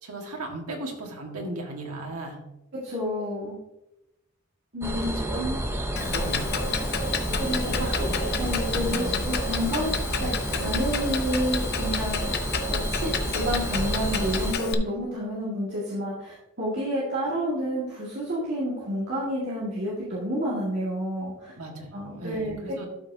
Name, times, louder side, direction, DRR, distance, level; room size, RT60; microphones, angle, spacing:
voice 1, 0.0-2.4 4.9-5.6 6.0-6.6 7.8-8.1 8.7-9.2 21.6-22.9, right 2 dB, 85° right, 1 dB, 1.6 m, -36 dB
voice 2, 2.8-3.6 4.7-5.1 7.4-7.7 8.0-8.1 8.4-10.3 10.6-12.3 12.7-21.5 21.9-22.8, equal, 50° right, -8 dB, 2.0 m, -30 dB
sound 1, 4.8-14.5, right 1 dB, 10° right, 0.8 m, -30 dB
Clock, 6.0-14.7, left 5 dB, 45° left, 0.7 m, -31 dB
12.5 x 5.7 x 2.7 m, 0.93 s
head